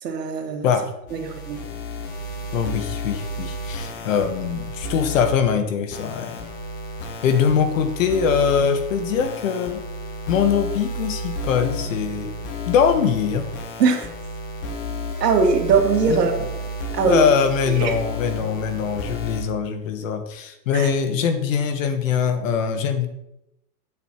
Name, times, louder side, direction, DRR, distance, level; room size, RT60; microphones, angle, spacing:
voice 1, 0.0-0.7 1.1-1.6 13.8-14.1 15.2-16.4 16.9-17.3 17.7-17.9 20.7-20.9, right 5 dB, 80° right, 2 dB, 2.3 m, -21 dB
sound 1, 1.1-5.3 5.9-19.4, left 1 dB, 20° left, 1.2 m, -32 dB
voice 2, 2.5-6.3 7.2-9.8 10.3-12.3 12.7-13.5 16.1-16.3 17.0-23.1, left 7 dB, 55° left, 8 dB, 1.5 m, -22 dB
8.2 x 7.6 x 4.5 m, 0.83 s
supercardioid pair, 165°, 48 cm